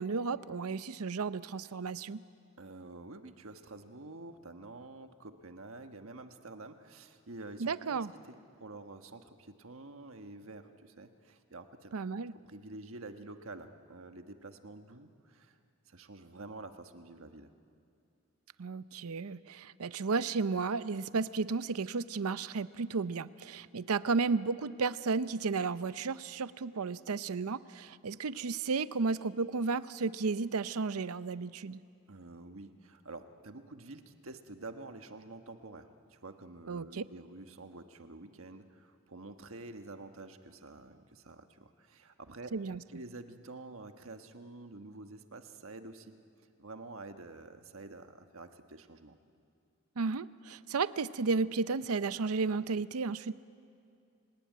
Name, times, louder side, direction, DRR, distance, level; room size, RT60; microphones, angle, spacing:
voice 1, 0.0-2.2 7.6-8.1 11.9-12.3 18.6-31.8 36.7-37.0 42.5-42.8 50.0-53.3, right 4 dB, 90° right, 15 dB, 0.6 m, -33 dB
voice 2, 2.6-11.9 12.3-15.6 15.9-17.5 32.1-42.5 42.9-46.1 46.6-49.2, right 2 dB, 70° right, 7 dB, 1.4 m, -48 dB
29.5 x 18.0 x 9.3 m, 2.4 s
head